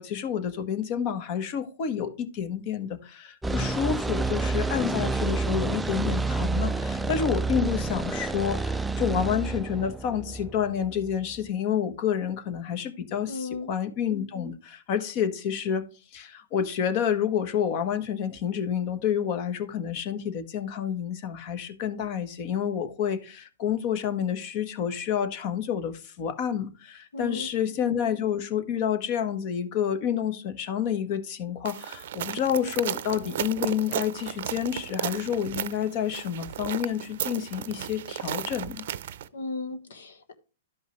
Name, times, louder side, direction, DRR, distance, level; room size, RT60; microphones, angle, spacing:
voice 1, 0.0-15.9 16.1-38.8, left 8 dB, 45° left, 1.3 m, -29 dB
sound 1, 3.4-11.4, right 3 dB, 5° right, 0.4 m, -29 dB
voice 2, 13.3-13.7 27.1-27.5 39.3-40.4, left 3 dB, 75° left, 1.4 m, -35 dB
sound 2, 31.7-39.3, right 11 dB, 60° right, 0.6 m, -34 dB
12.5 x 5.3 x 3.1 m
hypercardioid pair, 120°, 0 cm